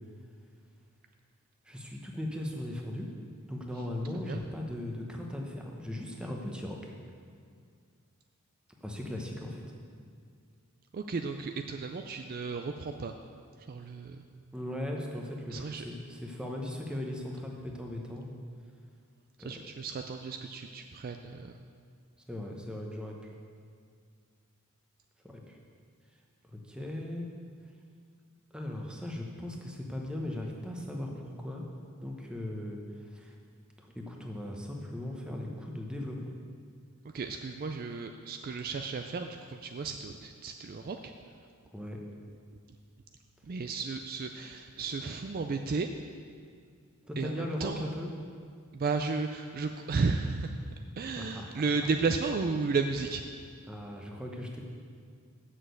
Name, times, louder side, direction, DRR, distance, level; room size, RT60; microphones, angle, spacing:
voice 1, 1.7-3.1 3.5-6.9 8.8-9.6 14.5-18.2 19.4-19.7 22.3-23.2 25.2-25.6 26.5-27.3 28.5-31.7 32.0-32.8 33.1-33.3 33.8-36.2 41.7-42.0 47.0-48.1 51.2-51.7 53.7-54.6, left 1 dB, 5° right, 0 dB, 0.9 m, -38 dB
voice 2, 10.9-13.1 13.7-14.2 15.5-15.9 19.4-21.6 37.1-41.1 43.4-45.9 47.2-47.9 48.7-53.2, right 4 dB, 40° right, 5 dB, 0.4 m, -33 dB
7.4 x 6.3 x 7.8 m, 2.2 s
head